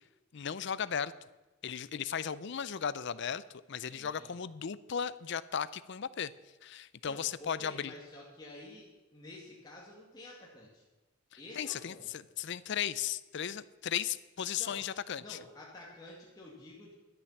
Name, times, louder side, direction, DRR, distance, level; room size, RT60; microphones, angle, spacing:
voice 1, 0.3-1.1 1.6-6.3 6.6-7.9 11.5-15.4, left 8 dB, 55° left, 17 dB, 0.5 m, -36 dB
voice 2, 3.8-4.3 7.0-8.9 9.1-10.8 11.4-12.1 14.6-14.8 15.2-16.9, left 1 dB, 20° left, -4 dB, 2.0 m, -50 dB
11.5 x 9.9 x 7.1 m, 1.1 s
head